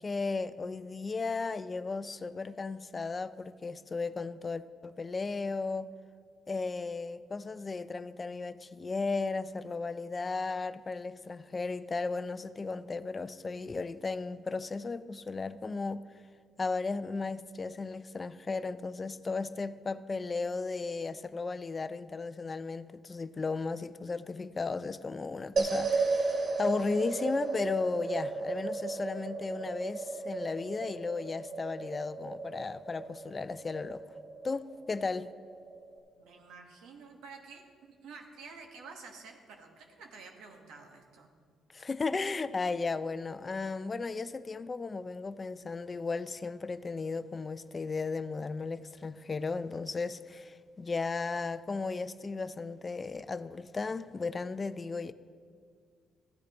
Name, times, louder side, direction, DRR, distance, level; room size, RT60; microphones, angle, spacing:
voice 1, 0.0-5.9 6.5-16.2 16.6-34.0 34.4-35.3 41.7-55.1, left 4 dB, 30° left, 0.4 m, -35 dB
sound 1, 25.6-36.0, right 3 dB, 60° right, 2.3 m, -35 dB
voice 2, 36.2-41.3, right 4 dB, 90° right, 1.4 m, -50 dB
15.0 x 10.0 x 3.0 m
cardioid pair, 90°, 0 cm